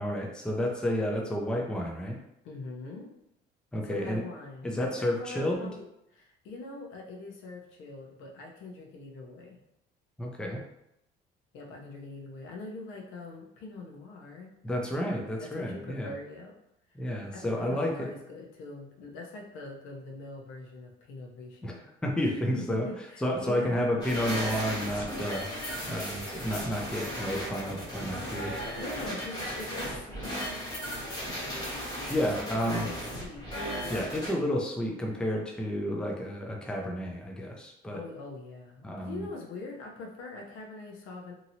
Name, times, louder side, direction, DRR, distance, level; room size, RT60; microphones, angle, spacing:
voice 1, 0.0-2.2 3.7-4.2 4.6-5.6 10.2-10.6 14.6-16.1 17.0-18.1 21.6-21.7 22.0-22.9 23.2-25.5 25.9-28.6 32.1-32.9 33.9-38.0 38.8-39.3, equal, 5° left, 0 dB, 0.4 m, -31 dB
voice 2, 2.4-3.1 3.8-9.6 11.5-14.5 15.4-16.5 17.3-21.9 22.2-24.1 28.7-30.4 32.4-33.5 37.9-41.3, left 3 dB, 75° left, 0 dB, 0.8 m, -43 dB
sound 1, 24.0-34.3, equal, 20° left, 1.2 m, -36 dB
2.8 x 2.8 x 2.7 m, 0.82 s
cardioid pair, 120°, 21 cm